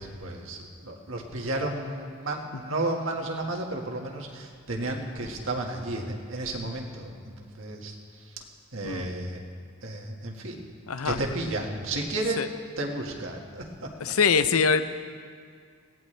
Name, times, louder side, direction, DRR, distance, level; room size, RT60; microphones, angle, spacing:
voice 1, 0.0-8.4 8.7-9.4 9.8-10.7 11.0-12.5 12.8-13.9, right 2 dB, 60° right, 1 dB, 1.8 m, -33 dB
voice 2, 10.9-11.2 12.4-12.5 14.0-14.8, left 5 dB, 80° left, 11 dB, 0.7 m, -23 dB
21.5 x 17.0 x 3.4 m, 2.1 s
head